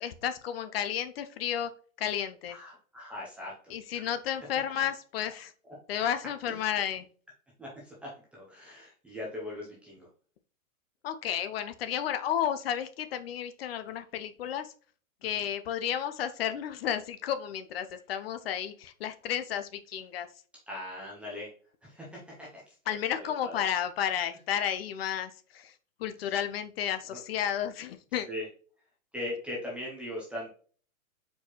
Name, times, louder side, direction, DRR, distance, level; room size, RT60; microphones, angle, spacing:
voice 1, 0.0-1.7 2.0-2.6 3.7-5.5 5.9-7.1 11.0-14.7 15.2-20.3 22.9-25.7 26.0-28.3, left 9 dB, 45° left, 10 dB, 0.5 m, -32 dB
voice 2, 2.5-3.5 4.8-4.9 6.5-6.7 7.6-10.1 20.7-21.5 21.8-22.6 23.4-23.6 26.2-26.3 27.1-27.2 28.3-28.4 29.1-30.5, left 1 dB, 5° right, -5 dB, 0.4 m, -40 dB
4.5 x 4.1 x 2.8 m, 0.42 s
hypercardioid pair, 145°, 41 cm